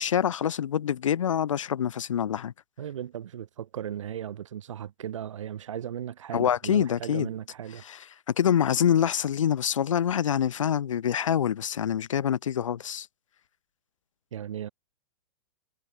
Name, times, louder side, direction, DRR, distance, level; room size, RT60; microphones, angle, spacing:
voice 1, 0.0-2.5 6.3-7.3 7.9-8.0 8.4-13.1, left 9 dB, 85° left, 3.4 m, -25 dB
voice 2, 2.8-7.8 14.3-14.7, right 10 dB, 80° right, 6.8 m, -36 dB
hypercardioid pair, 155°, 16 cm